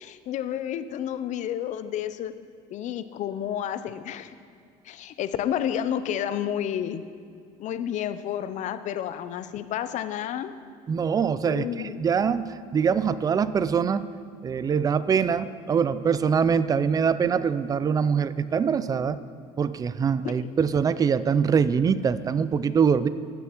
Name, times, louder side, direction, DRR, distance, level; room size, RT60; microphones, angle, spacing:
voice 1, 0.0-2.3 2.7-4.3 4.8-7.0 7.6-10.5 11.4-12.0 20.2-20.5, left 10 dB, 50° left, 12 dB, 0.5 m, -30 dB
voice 2, 10.9-11.7 12.0-14.0 14.4-19.2 19.6-23.1, right 6 dB, 25° right, 15 dB, 0.3 m, -23 dB
15.5 x 7.1 x 3.0 m, 2.4 s
supercardioid pair, 105°, 16 cm